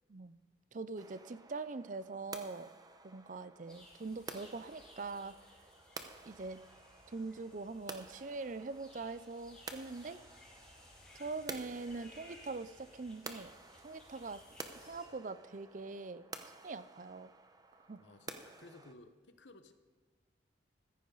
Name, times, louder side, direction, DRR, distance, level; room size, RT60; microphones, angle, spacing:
voice 1, 0.1-0.4 0.7-2.7 3.0-5.5 6.2-6.6 7.1-10.2 11.1-13.6 13.8-17.3 17.8-18.0, right 3 dB, 45° right, 15 dB, 0.5 m, -43 dB
sound 1, 1.0-18.9, right 3 dB, 20° right, 0.9 m, -52 dB
sound 2, 3.7-15.1, left 1 dB, 5° left, 5.1 m, -60 dB
voice 2, 18.0-19.7, left 2 dB, 80° left, 9 dB, 1.2 m, -57 dB
15.0 x 14.5 x 4.0 m, 1.5 s
head